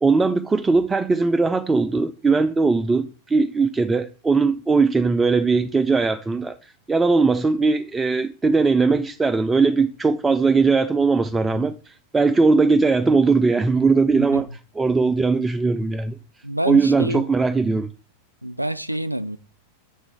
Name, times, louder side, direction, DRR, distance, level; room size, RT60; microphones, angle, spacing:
voice 1, 0.0-16.2 16.7-17.9, right 4 dB, 15° right, 0.4 m, -19 dB
voice 2, 16.4-17.2 18.4-19.4, right 1 dB, 90° right, 0.4 m, -27 dB
5.7 x 3.7 x 4.8 m
figure-of-eight pair, 90°, 0 cm